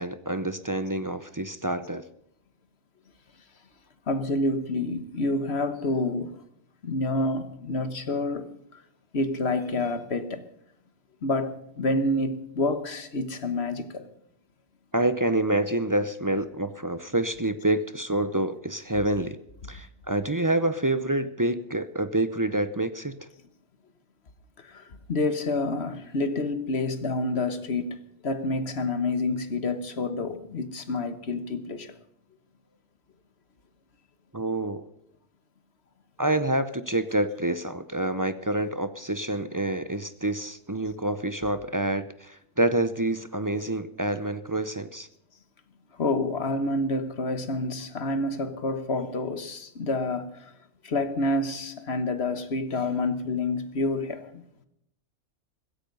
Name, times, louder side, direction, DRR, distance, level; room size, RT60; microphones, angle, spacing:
voice 1, 0.0-2.1 14.9-19.4 19.7-23.3 34.3-34.8 36.2-45.1, right 1 dB, 20° right, 0.5 m, -27 dB
voice 2, 4.1-6.3 6.8-8.5 9.1-10.4 11.2-14.1 24.6-32.0 45.9-50.5 50.8-54.4, left 2 dB, 60° left, 1.6 m, -28 dB
16.0 x 15.0 x 5.4 m
omnidirectional pair, 1.3 m